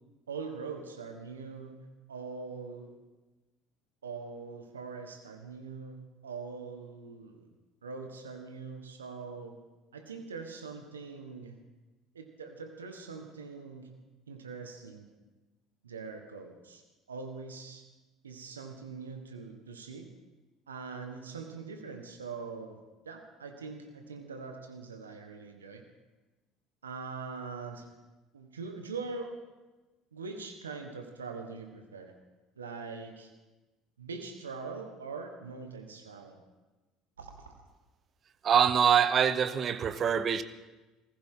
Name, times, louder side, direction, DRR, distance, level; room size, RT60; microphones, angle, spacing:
voice 1, 0.3-3.0 4.0-7.5 7.8-9.6 9.9-11.6 12.1-13.9 14.3-15.1 15.8-16.8 17.1-17.8 18.2-20.1 20.7-22.8 23.0-25.8 26.8-27.9 28.3-29.4 30.1-32.1 32.6-33.3 34.0-36.4 37.2-37.6, right 4 dB, 90° right, 5 dB, 1.3 m, -42 dB
voice 2, 38.4-40.4, right 8 dB, 40° right, 13 dB, 0.9 m, -24 dB
20.0 x 15.0 x 3.8 m, 1.1 s
hypercardioid pair, 65°, 0 cm